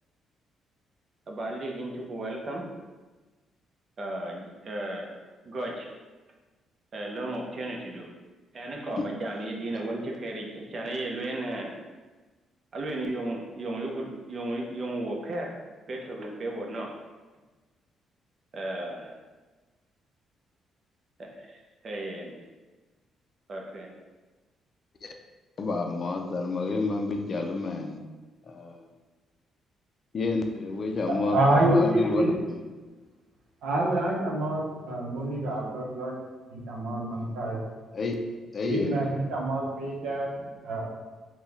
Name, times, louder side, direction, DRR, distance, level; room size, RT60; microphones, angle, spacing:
voice 1, 1.3-2.7 4.0-5.1 5.4-5.9 6.9-8.1 8.5-11.8 12.7-15.5 15.9-16.9 18.5-19.1 21.2-22.3 23.5-23.9, right 1 dB, 45° right, 0 dB, 0.7 m, -34 dB
voice 2, 25.6-28.0 28.5-28.8 30.1-32.6 37.9-38.2 38.5-39.0, left 3 dB, 45° left, 4 dB, 0.4 m, -29 dB
voice 3, 30.9-32.3 33.6-36.2 36.5-37.6 38.7-40.8, right 1 dB, 85° right, -2 dB, 0.8 m, -27 dB
4.2 x 2.3 x 3.4 m, 1.3 s
cardioid pair, 90°, 0 cm